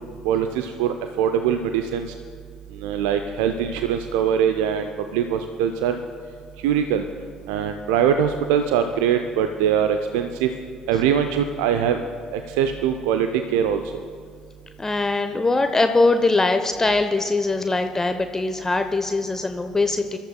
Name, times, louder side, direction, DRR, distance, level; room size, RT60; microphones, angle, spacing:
voice 1, 0.2-2.1 2.7-6.0 6.6-7.0 7.5-10.5 10.9-12.0 12.3-13.8, right 8 dB, 70° right, 7 dB, 0.5 m, -22 dB
voice 2, 14.8-20.2, left 3 dB, 20° left, 7 dB, 0.8 m, -21 dB
25.0 x 13.5 x 2.2 m, 2.2 s
figure-of-eight pair, 50°, 2 cm